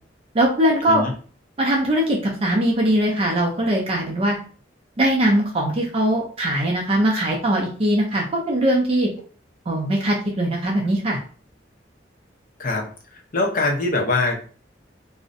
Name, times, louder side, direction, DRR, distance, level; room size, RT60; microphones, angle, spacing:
voice 1, 0.3-1.1 1.6-4.4 5.0-9.1 9.7-11.2, right 1 dB, 30° right, -1 dB, 0.4 m, -21 dB
voice 2, 13.1-14.4, left 2 dB, 50° left, 0 dB, 0.6 m, -23 dB
2.5 x 2.0 x 2.5 m, 0.41 s
head